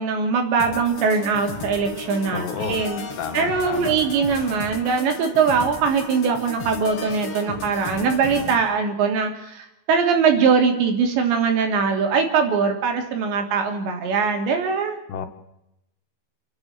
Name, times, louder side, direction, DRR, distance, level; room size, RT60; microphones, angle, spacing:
voice 1, 0.0-3.0 3.3-15.0, right 5 dB, 85° right, 4 dB, 5.4 m, -21 dB
sound 1, 0.6-8.6, left 3 dB, 40° left, 3.2 m, -34 dB
voice 2, 2.3-2.8 3.2-3.9 15.1-15.3, left 7 dB, 75° left, 7 dB, 3.9 m, -30 dB
29.5 x 10.5 x 9.3 m, 0.85 s
omnidirectional pair, 5.0 m